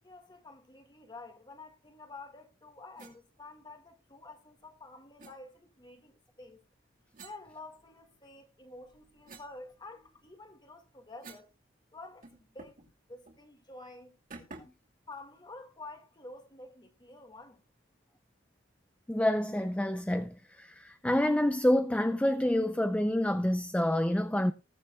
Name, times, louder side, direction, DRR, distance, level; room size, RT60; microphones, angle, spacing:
voice 1, 0.0-6.6 7.2-11.5 11.9-12.8 13.1-14.2 15.1-17.6, left 2 dB, 25° left, 1.8 m, -49 dB
sound 1, 3.0-3.2 5.2-5.4 7.1-8.2 8.7-11.6 11.8-11.9 12.2-12.9 13.2-13.4 14.3-14.9, right 3 dB, 45° right, 2.7 m, -52 dB
voice 2, 19.1-24.5, left 1 dB, 5° left, 0.4 m, -28 dB
20.5 x 7.4 x 2.3 m
head